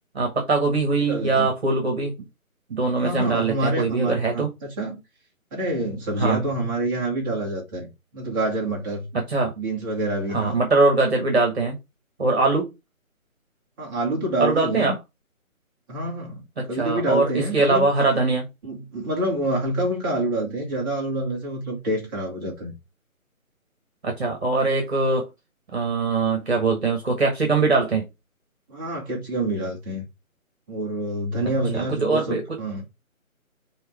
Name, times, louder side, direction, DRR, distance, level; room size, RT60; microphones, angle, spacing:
voice 1, 0.1-2.1 2.7-4.5 6.2-6.4 9.1-9.5 10.3-11.8 12.2-12.7 14.4-15.0 16.6-18.5 24.0-25.3 25.7-28.1 31.7-32.6, right 3 dB, 45° right, 1.7 m, -22 dB
voice 2, 1.0-1.5 3.0-5.0 5.5-9.1 9.6-10.6 13.8-15.0 15.9-17.9 18.6-22.7 28.7-30.0 30.7-32.8, right 1 dB, 15° right, 1.8 m, -27 dB
5.5 x 3.6 x 4.7 m
figure-of-eight pair, 150°, 42 cm